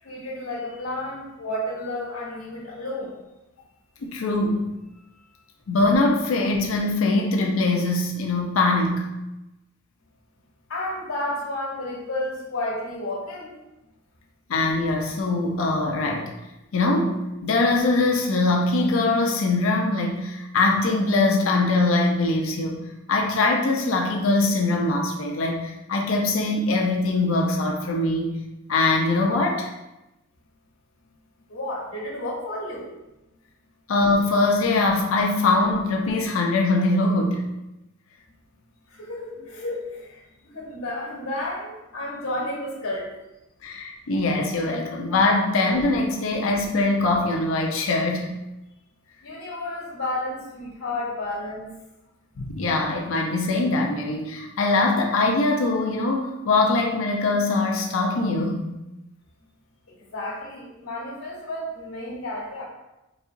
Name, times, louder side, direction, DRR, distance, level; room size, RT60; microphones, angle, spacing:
voice 1, 0.0-3.2 4.9-5.4 10.7-13.5 31.5-32.9 38.9-43.1 49.2-51.7 59.9-62.6, left 1 dB, 85° left, -2 dB, 1.3 m, -32 dB
voice 2, 4.0-4.6 5.7-9.1 14.5-16.3 16.7-22.8 23.1-28.4 28.7-29.7 33.9-37.5 43.6-48.3 52.4-58.7, left 2 dB, 70° left, 1 dB, 0.5 m, -22 dB
4.0 x 2.8 x 2.6 m, 0.95 s
head